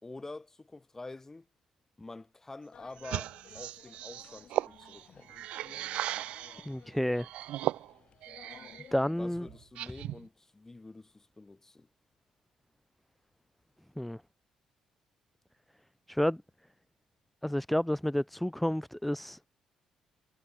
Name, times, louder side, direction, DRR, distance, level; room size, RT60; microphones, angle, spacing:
voice 1, 0.0-1.5 2.0-5.3 9.2-11.9, left 2 dB, 20° left, 2.6 m, -47 dB
sound 1, 2.7-9.7, left 8 dB, 60° left, 2.9 m, -57 dB
sound 2, 3.0-6.7 7.2-8.9 9.2-10.3, right 14 dB, 75° right, 0.7 m, -37 dB
voice 2, 6.7-7.3 8.9-9.5 14.0-14.2 16.1-16.4 17.4-19.5, left 1 dB, 5° left, 0.5 m, -30 dB
supercardioid pair, 55°, 2 cm